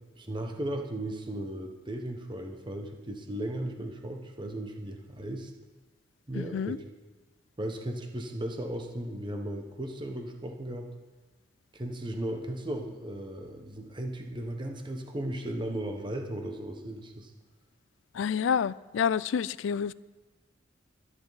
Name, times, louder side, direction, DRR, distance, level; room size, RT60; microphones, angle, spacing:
voice 1, 0.2-5.5 6.3-6.8 7.6-10.9 11.7-17.3, right 1 dB, 25° right, 4 dB, 1.0 m, -36 dB
voice 2, 6.3-6.8 18.1-19.9, left 7 dB, 90° left, 20 dB, 0.4 m, -28 dB
22.0 x 9.8 x 4.0 m, 1.2 s
head